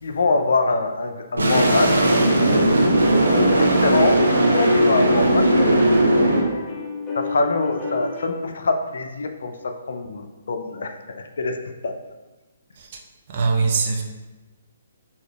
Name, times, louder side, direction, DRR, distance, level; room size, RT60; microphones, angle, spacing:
voice 1, 0.0-2.1 3.2-6.7 7.1-11.6 11.8-11.9, left 3 dB, 60° left, 6 dB, 0.4 m, -25 dB
sound 1, 1.4-6.4, right 1 dB, 70° right, 0.9 m, -17 dB
sound 2, 1.9-8.5, left 1 dB, 15° left, 0.8 m, -34 dB
voice 2, 13.3-14.0, right 4 dB, 40° right, 0 dB, 0.6 m, -22 dB
6.3 x 2.8 x 2.3 m, 1.2 s
figure-of-eight pair, 130°, 0 cm